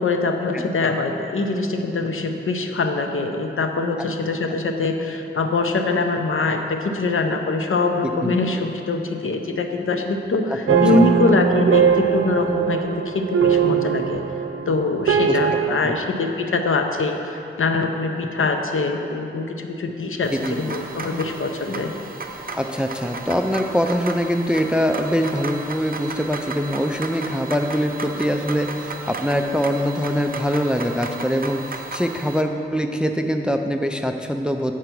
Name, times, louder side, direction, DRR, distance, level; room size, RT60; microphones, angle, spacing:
voice 1, 0.0-14.2 14.7-21.9, left 3 dB, 75° left, 5 dB, 0.7 m, -23 dB
voice 2, 8.0-8.4 10.5-11.1 15.3-15.4 15.7-15.9 20.3-20.6 22.5-34.7, equal, 5° right, 5 dB, 0.3 m, -23 dB
sound 1, 10.7-15.7, right 7 dB, 80° right, 0.6 m, -20 dB
sound 2, 20.2-32.4, right 3 dB, 45° right, 0.6 m, -34 dB
7.9 x 4.7 x 6.0 m, 2.8 s
wide cardioid pair, 85°, 21 cm